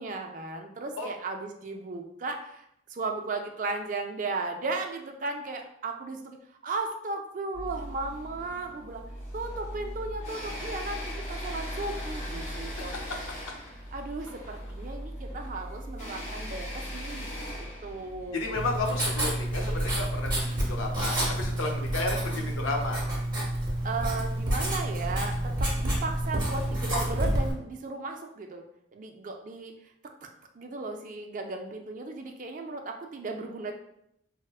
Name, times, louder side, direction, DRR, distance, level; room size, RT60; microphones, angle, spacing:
voice 1, 0.0-6.4 6.6-9.0 9.3-12.9 13.9-18.7 23.8-28.6 28.9-29.7 30.5-33.7, right 3 dB, 40° right, 4 dB, 0.3 m, -36 dB
sound 1, 7.5-23.2, equal, 40° left, 0.8 m, -39 dB
voice 2, 18.3-23.1, left 2 dB, 90° left, 1 dB, 0.6 m, -32 dB
Writing, 18.6-27.5, right 1 dB, 25° right, 0.8 m, -29 dB
4.5 x 2.1 x 2.3 m, 0.76 s
head